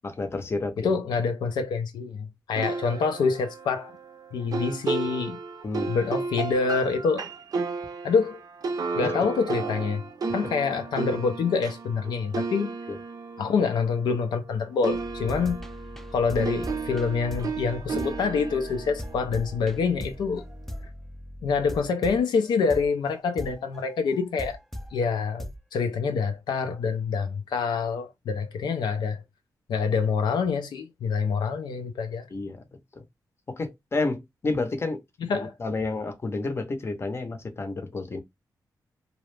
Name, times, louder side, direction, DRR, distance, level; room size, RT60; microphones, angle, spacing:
voice 1, 0.2-0.9 5.6-5.9 32.3-32.6 33.5-35.0 35.6-38.2, left 3 dB, 35° left, 0.7 m, -30 dB
voice 2, 0.8-3.9 4.3-5.4 5.9-7.3 8.0-8.4 9.0-10.0 10.3-12.7 13.4-15.6 16.1-20.4 21.4-24.6 24.9-29.2 29.7-32.3 35.2-35.5, left 5 dB, 80° left, 0.4 m, -26 dB
sound 1, 2.6-14.5 14.8-20.1, right 4 dB, 60° right, 0.5 m, -34 dB
sound 2, 14.9-25.0 25.4-25.8, left 1 dB, 5° left, 0.4 m, -39 dB
2.3 x 2.1 x 3.1 m
cardioid pair, 70°, 7 cm